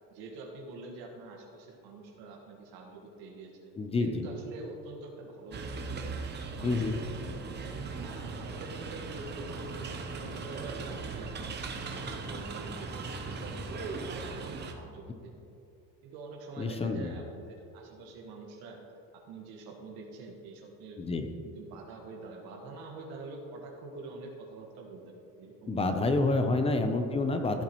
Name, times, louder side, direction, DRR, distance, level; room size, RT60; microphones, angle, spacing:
voice 1, 0.1-3.7 4.0-6.0 6.6-6.9 7.9-15.4 16.0-19.0 19.3-21.0 21.4-25.7 26.2-26.4, right 3 dB, 75° right, 1 dB, 1.8 m, -46 dB
voice 2, 3.8-4.3 6.6-7.0 16.6-17.2 21.0-21.3 25.7-27.6, left 2 dB, 15° left, 6 dB, 0.6 m, -28 dB
sound 1, 5.5-14.7, right 4 dB, 30° right, 0.8 m, -38 dB
14.5 x 7.3 x 3.1 m, 2.7 s
cardioid pair, 145°, 37 cm